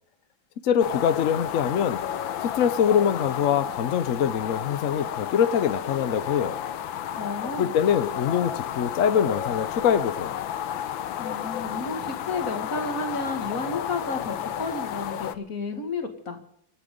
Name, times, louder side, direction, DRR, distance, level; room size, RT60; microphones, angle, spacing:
voice 1, 0.6-2.0 2.4-6.6 7.6-10.4, left 8 dB, 60° left, 11 dB, 0.8 m, -24 dB
sound 1, 0.8-15.3, left 10 dB, 85° left, 1.6 m, -32 dB
voice 2, 7.2-7.8 11.2-16.4, left 3 dB, 45° left, 5 dB, 2.5 m, -32 dB
25.0 x 9.0 x 5.3 m, 0.69 s
omnidirectional pair, 2.1 m